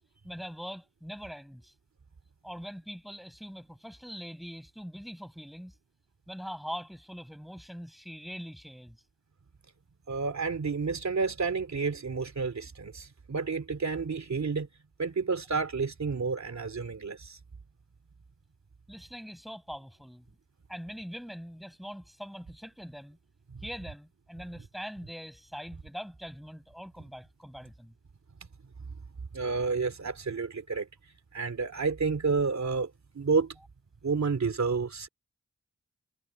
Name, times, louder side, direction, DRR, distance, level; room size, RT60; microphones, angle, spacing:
voice 1, 0.2-1.7 2.4-5.7 6.3-9.0 18.9-20.2 20.7-23.2 23.6-27.9, equal, ahead, 7.9 m, -42 dB
voice 2, 10.1-14.7 15.0-17.4 23.5-23.6 29.3-30.9 31.3-33.6 34.0-35.1, right 4 dB, 70° right, 3.1 m, -30 dB
wide cardioid pair, 60°, 29 cm